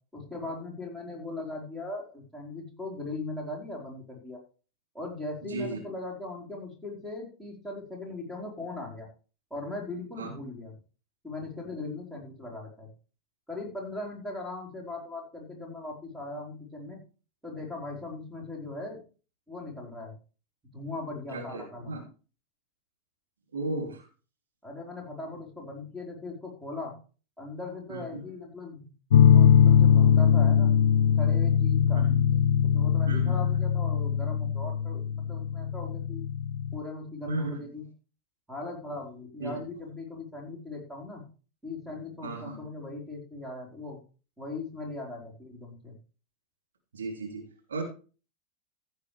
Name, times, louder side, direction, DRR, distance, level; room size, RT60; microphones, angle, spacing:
voice 1, 0.1-4.4 4.9-9.1 9.5-10.7 11.2-12.9 13.5-17.0 17.4-19.0 19.5-20.1 20.7-21.9 24.6-26.9 27.4-28.9 29.2-30.7 31.2-32.0 32.6-36.2 36.7-37.8 38.5-41.2 41.6-44.0 44.4-45.9, left 2 dB, 5° right, 1 dB, 4.6 m, -39 dB
voice 2, 5.4-5.8 10.2-10.3 21.3-22.0 23.5-24.1 27.9-28.3 32.0-32.2 33.1-33.5 37.3-37.6 39.4-39.5 42.2-42.6 46.9-47.8, right 2 dB, 70° right, 0 dB, 3.1 m, -35 dB
sound 1, 29.1-36.8, left 8 dB, 65° left, 0.5 m, -21 dB
15.0 x 8.0 x 3.4 m, 0.36 s
figure-of-eight pair, 90°, 0 cm